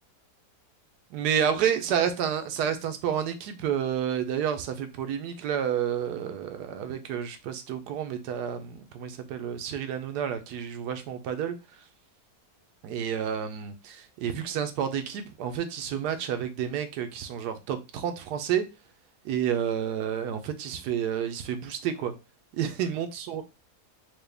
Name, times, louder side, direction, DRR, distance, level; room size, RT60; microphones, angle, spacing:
voice 1, 1.1-11.5 12.8-18.6 19.2-22.1 22.6-23.4, right 8 dB, 90° right, 1.2 m, -30 dB
4.6 x 2.3 x 3.3 m
omnidirectional pair, 1.7 m